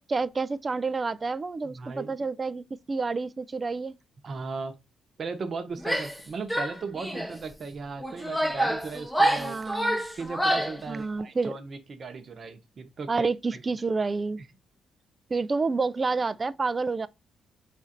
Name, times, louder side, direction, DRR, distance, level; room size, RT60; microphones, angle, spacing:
voice 1, 0.0-4.0 9.4-10.0 10.9-11.5 13.1-14.4 15.3-17.1, right 4 dB, 30° right, 0.3 m, -29 dB
voice 2, 1.6-2.1 4.2-4.7 5.2-9.6 10.2-13.3 14.4-14.5, right 4 dB, 45° right, 0.9 m, -37 dB
Female speech woman speaking / Yell, 5.8-6.2 6.5-7.4 8.0-10.8, right 1 dB, 5° left, 0.7 m, -27 dB
4.2 x 2.5 x 4.2 m
cardioid pair, 90°, 0 cm